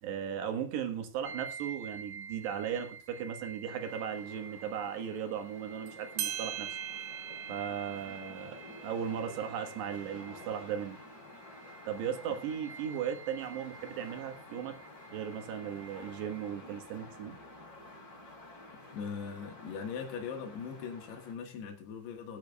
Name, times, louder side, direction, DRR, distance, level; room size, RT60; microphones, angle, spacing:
voice 1, 0.0-6.7 7.5-11.0 11.9-14.8 15.1-17.6, right 8 dB, 90° right, 6 dB, 3.7 m, -37 dB
sound 1, 1.2-16.5, right 5 dB, 45° right, 3.3 m, -49 dB
sound 2, 3.7-21.3, left 2 dB, 25° left, 3.2 m, -51 dB
sound 3, 5.9-6.0 6.2-11.3, right 11 dB, 75° right, 3.0 m, -42 dB
voice 2, 18.9-22.4, left 6 dB, 80° left, 2 dB, 3.7 m, -40 dB
19.5 x 10.5 x 2.4 m, 0.38 s
omnidirectional pair, 4.7 m